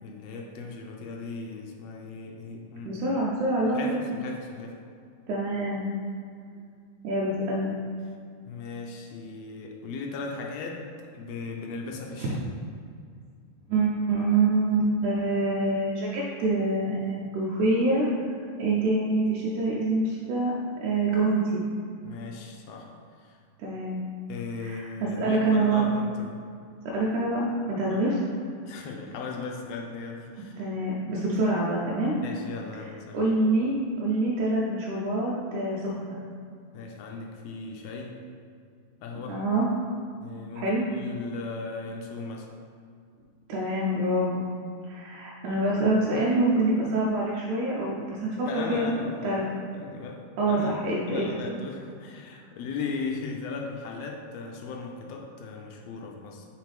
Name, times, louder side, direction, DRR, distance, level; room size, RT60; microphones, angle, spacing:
voice 1, 0.0-3.0 3.7-4.8 8.5-12.4 22.0-23.4 24.3-26.4 27.9-28.0 28.6-30.6 32.2-33.3 36.7-38.3 39.0-39.4 40.2-42.5 48.4-49.4 49.7-56.5, left 4 dB, 80° left, 1 dB, 1.5 m, -37 dB
voice 2, 2.9-4.0 5.3-5.9 7.0-7.8 13.7-18.1 18.6-20.5 20.8-21.6 23.6-24.0 24.6-24.9 25.2-25.9 26.9-28.2 30.6-32.2 33.1-36.2 39.3-39.7 40.6-40.8 43.5-44.5 44.8-48.9 49.2-49.5 50.4-51.3, right 2 dB, 85° right, -4 dB, 2.2 m, -26 dB
6.2 x 5.0 x 3.4 m, 2.3 s
omnidirectional pair, 3.4 m